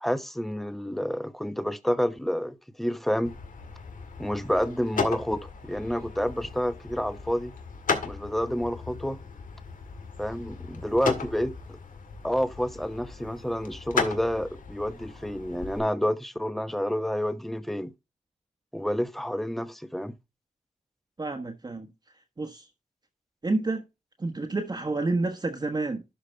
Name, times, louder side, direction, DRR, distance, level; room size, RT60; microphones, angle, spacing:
voice 1, 0.0-3.4 4.2-7.5 8.1-9.2 10.2-11.8 12.2-17.9 18.7-20.2, equal, ahead, 1.0 m, -29 dB
sound 1, 3.2-15.8, left 5 dB, 85° left, 1.9 m, -36 dB
voice 2, 21.2-21.9 22.4-22.7 23.4-23.8 24.2-26.0, right 2 dB, 30° right, 1.2 m, -29 dB
12.0 x 5.1 x 3.4 m
wide cardioid pair, 110°, 13 cm